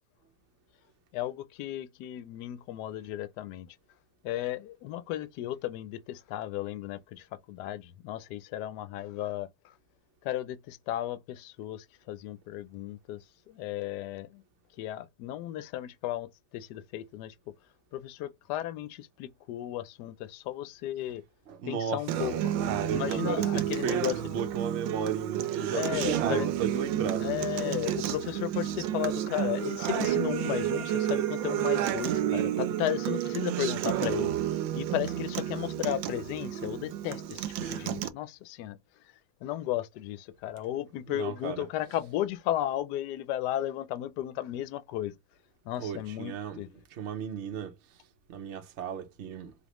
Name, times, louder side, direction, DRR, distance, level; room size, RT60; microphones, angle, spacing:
voice 1, 1.1-3.7 4.2-9.7 10.2-14.4 14.8-17.3 17.9-21.2 21.7-22.3 22.9-24.4 25.7-26.5 27.2-34.3 34.7-38.8 39.4-45.2 45.6-46.7, left 13 dB, 75° left, 1.1 m, -34 dB
voice 2, 21.5-22.0 22.3-27.3 41.1-41.6 45.8-46.6 46.9-48.0 48.3-49.5, right 7 dB, 60° right, 0.7 m, -34 dB
Acoustic guitar, 22.1-38.1, right 11 dB, 90° right, 1.4 m, -31 dB
4.1 x 3.1 x 3.0 m
omnidirectional pair, 2.0 m